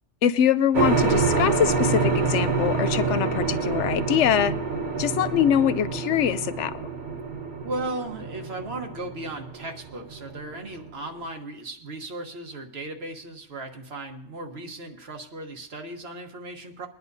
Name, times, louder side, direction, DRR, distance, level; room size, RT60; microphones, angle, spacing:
voice 1, 0.2-4.5 5.0-6.8, left 9 dB, 75° left, 13 dB, 0.9 m, -23 dB
sound 1, 0.7-10.9, right 4 dB, 40° right, 1.1 m, -27 dB
sound 2, 4.4-9.9, right 3 dB, 75° right, 2.3 m, -42 dB
voice 2, 7.6-16.9, right 2 dB, 55° right, 5 dB, 1.6 m, -36 dB
22.5 x 10.5 x 2.7 m, 0.69 s
omnidirectional pair, 1.2 m